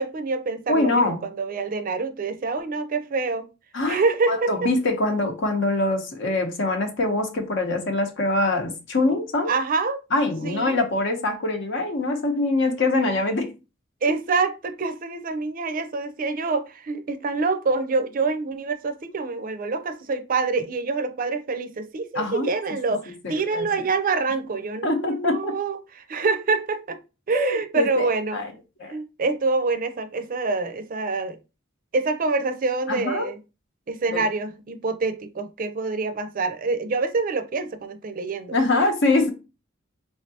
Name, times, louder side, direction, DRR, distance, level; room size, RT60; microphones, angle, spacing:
voice 1, 0.0-3.5 3.8-4.7 9.5-10.0 10.4-10.7 14.0-25.8 26.1-27.0 27.3-28.4 28.9-31.4 31.9-33.4 33.9-38.6, right 4 dB, 45° right, 0.4 m, -26 dB
voice 2, 0.7-1.2 3.7-4.0 4.3-9.5 10.1-13.5 22.1-22.5 23.2-23.7 24.8-25.5 27.3-28.5 28.8-28.9 32.9-33.3 34.1-34.2 38.5-39.3, left 2 dB, 65° left, 0.9 m, -24 dB
3.6 x 3.2 x 2.7 m
head